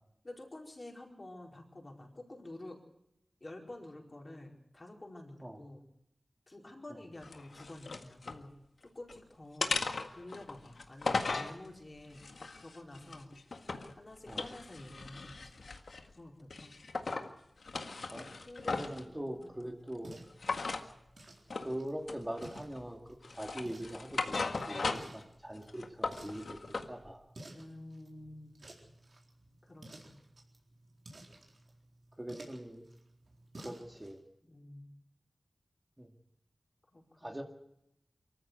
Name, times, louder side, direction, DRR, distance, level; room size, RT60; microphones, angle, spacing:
voice 1, 0.2-2.8 3.4-5.8 6.5-8.5 8.8-9.8 10.1-12.2 12.6-13.4 13.9-15.5 16.1-16.7 18.0-19.7 27.5-28.6 29.6-30.2 34.4-34.9 36.9-37.4, left 1 dB, 40° left, 0 dB, 4.8 m, -50 dB
sound 1, 7.2-8.4 8.8-9.2 9.6-11.5 12.1-13.9 14.3-16.1 16.5-17.3 17.6-19.0 20.4-20.9 21.5-21.7 22.1-22.8 23.2-25.2 25.6-26.9, left 3 dB, 80° left, 1.7 m, -37 dB
voice 2, 18.7-20.2 21.6-26.6 26.9-27.2 32.2-32.8 33.6-34.2 36.0-36.1 37.2-37.4, right 1 dB, 15° right, 2 dB, 2.2 m, -42 dB
sound 2, 19.0-34.2, right 1 dB, 65° right, 4.2 m, -55 dB
24.0 x 14.5 x 8.1 m, 0.80 s
wide cardioid pair, 85°, 0 cm